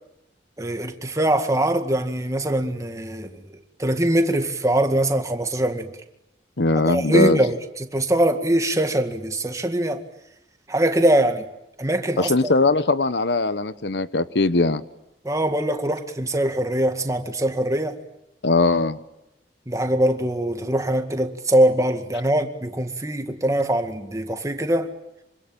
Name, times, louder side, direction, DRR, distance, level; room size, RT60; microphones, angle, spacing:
voice 1, 0.6-3.4 3.8-5.9 6.9-10.0 10.7-11.5 11.8-12.5 15.2-18.0 19.7-24.9, right 1 dB, 20° right, 2.0 m, -22 dB
voice 2, 6.6-7.4 12.2-14.8 18.4-19.0, left 2 dB, 80° left, 1.1 m, -20 dB
26.0 x 25.5 x 9.1 m
head